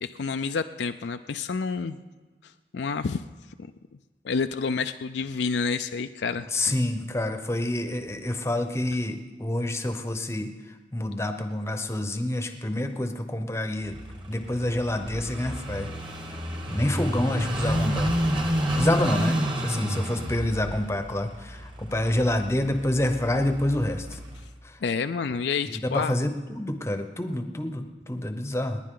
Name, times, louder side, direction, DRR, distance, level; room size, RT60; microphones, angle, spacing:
voice 1, 0.0-2.0 2.4-3.2 4.2-6.5 24.8-26.2, left 5 dB, 75° left, 8 dB, 0.4 m, -29 dB
voice 2, 6.5-10.5 10.9-14.0 14.3-15.9 16.7-18.1 18.8-24.2 25.7-28.8, left 1 dB, 15° left, 7 dB, 0.8 m, -27 dB
Car passing by / Idling, 13.8-24.5, equal, 25° right, 1.4 m, -30 dB
29.0 x 10.5 x 3.8 m, 1.3 s
head